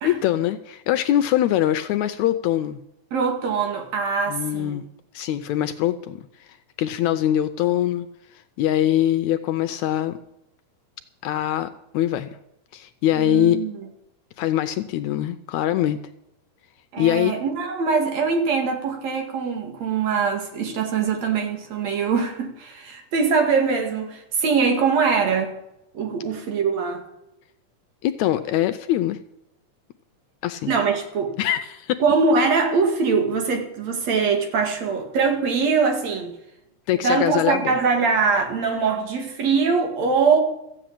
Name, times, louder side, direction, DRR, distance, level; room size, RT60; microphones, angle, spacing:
voice 1, 0.0-2.8 4.3-4.8 5.1-6.2 6.8-8.1 8.6-10.2 11.2-11.7 11.9-12.4 12.7-13.6 14.4-16.0 17.0-17.3 28.0-29.2 30.4-30.7 31.4-32.0 36.9-37.7, left 12 dB, 75° left, 11 dB, 1.8 m, -22 dB
voice 2, 3.1-4.8 13.2-13.8 16.9-25.5 25.9-27.0 30.7-31.3 32.0-36.3 36.9-40.4, right 5 dB, 60° right, 4 dB, 3.1 m, -22 dB
14.5 x 7.9 x 8.7 m, 0.86 s
omnidirectional pair, 3.6 m